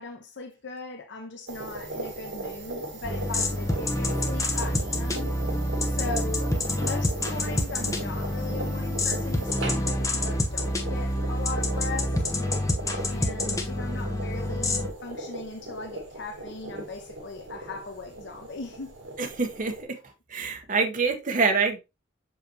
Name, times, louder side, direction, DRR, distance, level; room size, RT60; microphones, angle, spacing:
voice 1, 0.0-5.3 5.9-12.3 13.1-18.9, left 3 dB, 65° left, 0.8 m, -39 dB
sound 1, 1.5-19.8, right 2 dB, 75° right, 2.2 m, -38 dB
sound 2, 3.0-14.9, left 1 dB, 15° left, 0.9 m, -27 dB
voice 2, 19.2-19.7 20.3-21.8, right 4 dB, 45° right, 1.0 m, -25 dB
5.9 x 5.5 x 2.9 m
head